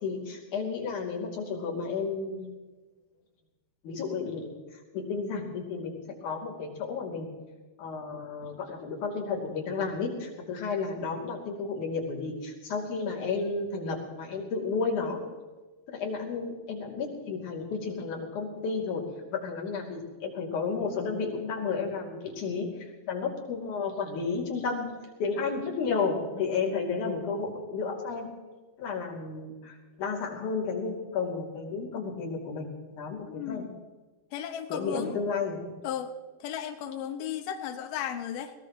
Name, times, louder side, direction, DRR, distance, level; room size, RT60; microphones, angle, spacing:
voice 1, 0.0-2.5 3.8-4.5 4.9-7.3 7.8-15.2 15.9-19.0 19.3-24.9 25.2-28.3 28.8-32.7 33.0-33.6 34.7-35.7, left 4 dB, 50° left, -3 dB, 3.9 m, -32 dB
voice 2, 33.3-33.7 34.3-35.2 35.8-36.1 36.4-38.5, left 9 dB, 80° left, 6 dB, 1.9 m, -35 dB
21.0 x 18.5 x 3.1 m, 1.3 s
omnidirectional pair, 5.0 m